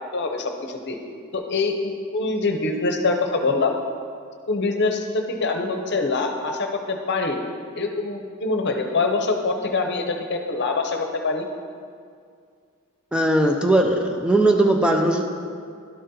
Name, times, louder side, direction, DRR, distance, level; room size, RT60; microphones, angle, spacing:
voice 1, 0.1-1.0 1.3-3.7 4.5-7.4 7.8-11.4, left 3 dB, 55° left, 4 dB, 0.7 m, -24 dB
voice 2, 13.1-15.2, right 1 dB, 5° right, 2 dB, 0.4 m, -19 dB
12.0 x 4.1 x 3.8 m, 2.2 s
head